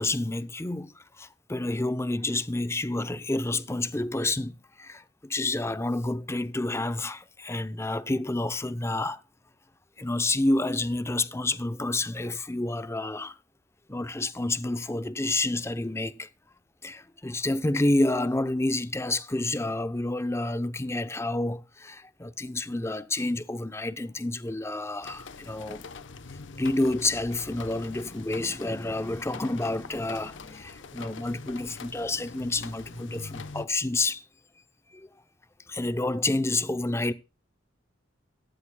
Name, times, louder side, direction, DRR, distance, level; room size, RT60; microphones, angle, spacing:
voice 1, 0.0-9.2 10.0-13.4 13.9-16.3 16.8-25.8 26.6-34.2 34.9-35.1 35.7-37.1, left 2 dB, 15° left, 0.6 m, -29 dB
sound 1, 25.0-33.7, left 4 dB, 65° left, 0.8 m, -44 dB
14.5 x 13.0 x 2.2 m
head